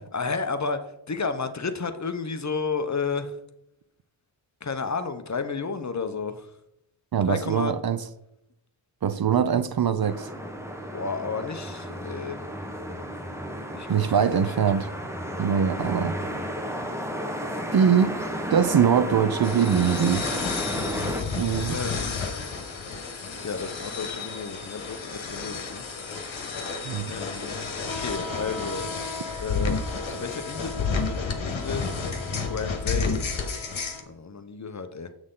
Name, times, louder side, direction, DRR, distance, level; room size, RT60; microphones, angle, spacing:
voice 1, 0.1-3.4 4.6-6.5 7.3-7.7 10.9-12.4 13.7-14.6 20.7-20.9 21.7-22.2 23.4-25.8 26.1-26.6 27.1-27.6 27.9-28.9 29.4-31.8 32.5-33.3 34.1-35.1, left 4 dB, 35° left, 0.7 m, -32 dB
voice 2, 7.1-8.0 9.0-10.3 13.9-14.9 15.4-16.2 17.7-18.2 18.5-20.4 21.3-21.8 26.8-27.2, right 7 dB, 50° right, 0.5 m, -22 dB
sound 1, 10.0-21.2, equal, 5° right, 1.1 m, -33 dB
sound 2, 19.4-34.0, left 4 dB, 70° left, 1.3 m, -31 dB
7.9 x 6.3 x 3.7 m
wide cardioid pair, 105°, 48 cm